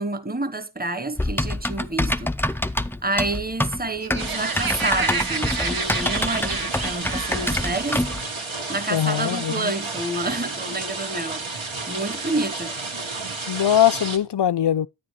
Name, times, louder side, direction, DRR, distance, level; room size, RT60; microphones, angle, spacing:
voice 1, 0.0-2.3 3.0-8.1 8.7-11.4 11.9-12.8, right 2 dB, 20° right, 1.0 m, -28 dB
Typing, 1.2-8.2, left 1 dB, 5° left, 0.4 m, -26 dB
Laughter, 3.8-7.6, right 4 dB, 45° right, 0.9 m, -30 dB
sound 1, 4.2-14.2, right 3 dB, 80° right, 1.8 m, -31 dB
voice 2, 8.9-9.7 13.5-14.9, left 10 dB, 60° left, 0.5 m, -21 dB
9.9 x 9.4 x 3.0 m
wide cardioid pair, 50°, 48 cm